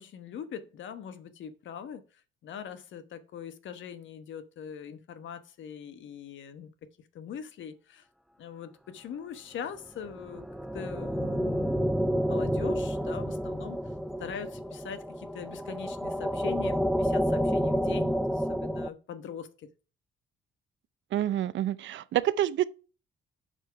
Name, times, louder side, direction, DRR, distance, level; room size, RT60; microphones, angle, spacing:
voice 1, 0.0-2.0 2.4-6.7 7.1-8.0 8.4-10.5 10.7-13.8 14.2-19.7, left 8 dB, 70° left, 1.2 m, -42 dB
sound 1, 10.0-18.9, equal, ahead, 0.5 m, -29 dB
voice 2, 21.1-22.6, right 12 dB, 70° right, 0.6 m, -27 dB
8.0 x 4.5 x 5.7 m
cardioid pair, 90°, 20 cm